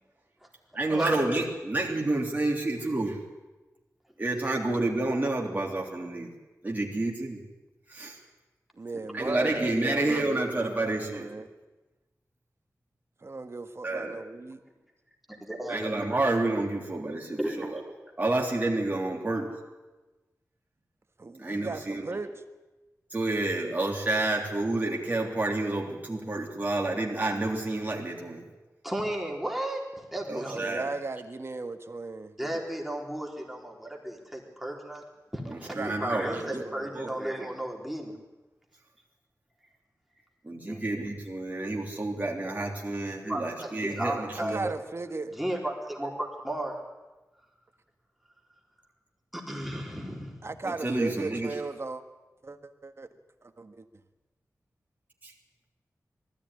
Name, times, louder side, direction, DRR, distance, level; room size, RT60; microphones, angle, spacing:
voice 1, 0.7-3.2 4.2-6.3 6.6-7.4 7.9-8.2 9.1-11.3 13.8-14.2 15.7-17.8 18.2-19.6 21.4-22.1 23.1-28.4 30.3-30.9 35.5-36.6 36.9-37.1 40.4-44.7 50.6-51.5 55.2-55.3, right 2 dB, 30° right, -2 dB, 3.4 m, -29 dB
voice 2, 8.7-11.5 13.2-14.6 21.2-22.4 30.5-32.3 35.7-36.9 44.5-45.3 50.4-52.0 52.4-53.1 53.4-53.9, right 3 dB, 45° right, 8 dB, 1.6 m, -37 dB
voice 3, 15.5-16.0 17.4-17.7 28.8-30.6 32.4-35.0 35.3-38.2 40.7-40.8 43.2-44.7 45.3-46.8 49.3-50.4, right 1 dB, ahead, 0 dB, 3.9 m, -34 dB
19.5 x 14.5 x 10.0 m, 1.1 s
wide cardioid pair, 75°, 6 cm